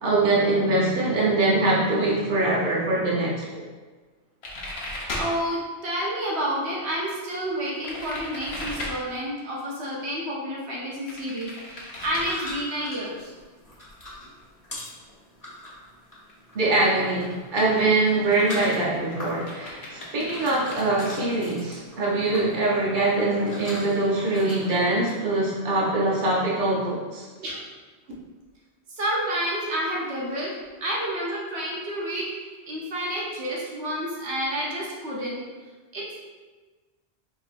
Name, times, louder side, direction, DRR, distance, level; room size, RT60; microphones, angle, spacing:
voice 1, 0.0-3.5 16.5-27.2, right 2 dB, 50° right, -5 dB, 1.0 m, -23 dB
sound 1, 4.4-5.4 7.7-8.9 11.1-12.3 16.3-16.4 16.7-16.9 17.2-17.6 17.9-21.3, left 1 dB, 70° left, 1.1 m, -35 dB
voice 2, 5.2-13.3 27.4-27.7 28.9-30.5 30.8-32.3 32.7-35.4 35.9-36.2, equal, 80° right, -4 dB, 1.1 m, -29 dB
sound 2, 12.0-25.1, left 1 dB, 20° left, 1.2 m, -43 dB
4.4 x 3.0 x 2.5 m, 1.3 s
omnidirectional pair, 1.1 m